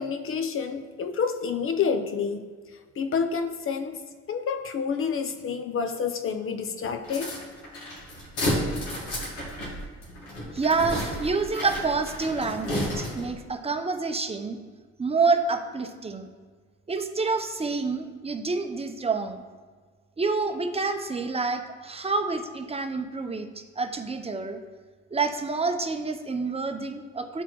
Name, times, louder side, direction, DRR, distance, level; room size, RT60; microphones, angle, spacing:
voice 1, 0.0-2.4 3.0-4.0 4.3-7.4, left 6 dB, 45° left, 7 dB, 0.7 m, -28 dB
sound 1, 7.0-13.4, left 1 dB, 85° left, 1.9 m, -32 dB
voice 2, 10.5-14.6 15.0-16.3 16.9-19.4 20.2-23.5 23.8-24.6 25.1-27.4, right 4 dB, 20° right, 6 dB, 0.7 m, -28 dB
11.5 x 4.1 x 3.1 m, 1.5 s
cardioid pair, 90°, 30 cm